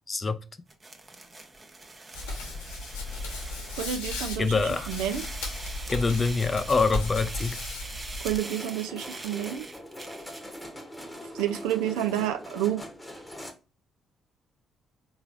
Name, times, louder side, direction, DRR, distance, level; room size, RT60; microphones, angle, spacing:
voice 1, 0.1-0.4 4.4-4.9 5.9-7.6, left 4 dB, 30° left, 0.4 m, -25 dB
sound 1, 0.7-10.5, right 2 dB, 25° right, 0.7 m, -43 dB
Hands, 2.1-8.4, left 2 dB, 75° left, 1.0 m, -35 dB
voice 2, 3.7-4.5 4.9-5.2 8.2-9.6 11.3-12.8, right 11 dB, 70° right, 0.4 m, -29 dB
sound 2, 8.4-13.5, equal, 10° left, 1.0 m, -42 dB
3.8 x 3.0 x 2.5 m
figure-of-eight pair, 45°, 0 cm